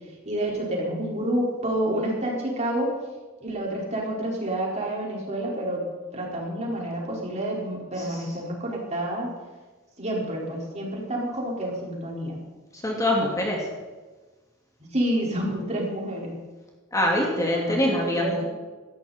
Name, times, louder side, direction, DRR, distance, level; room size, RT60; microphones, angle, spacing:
voice 1, 0.2-2.9 3.4-5.8 6.1-9.3 10.0-12.4 14.9-16.4 17.3-18.4, right 1 dB, 35° right, -3 dB, 5.0 m, -29 dB
voice 2, 12.7-13.7 16.9-18.4, left 1 dB, 15° left, -1 dB, 2.5 m, -24 dB
18.5 x 15.0 x 4.4 m, 1.3 s
head